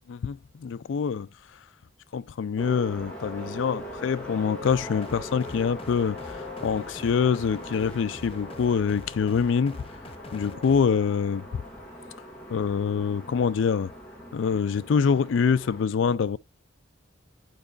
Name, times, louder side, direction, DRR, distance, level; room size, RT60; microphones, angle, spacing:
voice 1, 0.1-1.3 2.1-6.2 6.6-9.8 10.3-11.6 12.5-13.9 14.3-16.4, left 6 dB, 75° left, 0.4 m, -25 dB
sound 1, 2.6-15.8, left 1 dB, 5° left, 2.0 m, -41 dB
sound 2, 4.6-10.8, left 2 dB, 30° left, 0.6 m, -45 dB
9.0 x 4.7 x 2.4 m
head